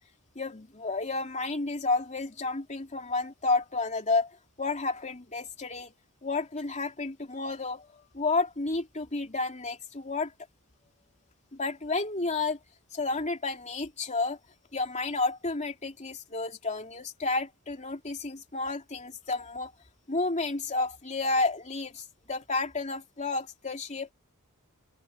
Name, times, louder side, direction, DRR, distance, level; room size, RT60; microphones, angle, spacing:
voice 1, 0.3-5.9 6.2-10.3 11.5-12.6 12.9-14.4 14.7-19.7 20.1-24.1, left 3 dB, 35° left, 3.1 m, -31 dB
open air
head